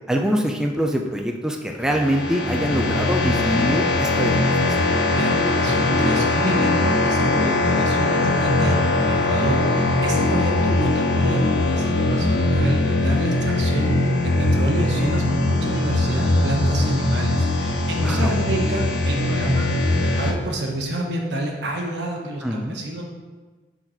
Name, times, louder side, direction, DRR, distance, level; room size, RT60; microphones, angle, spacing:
voice 1, 0.1-4.9 15.0-15.2 18.0-18.3 22.4-22.8, equal, 5° right, 2 dB, 0.4 m, -24 dB
sound 1, 1.8-20.3, left 2 dB, 85° left, 0.7 m, -21 dB
voice 2, 5.1-19.7 20.0-23.0, right 1 dB, 85° right, 1 dB, 1.1 m, -28 dB
6.5 x 4.0 x 4.4 m, 1.3 s
head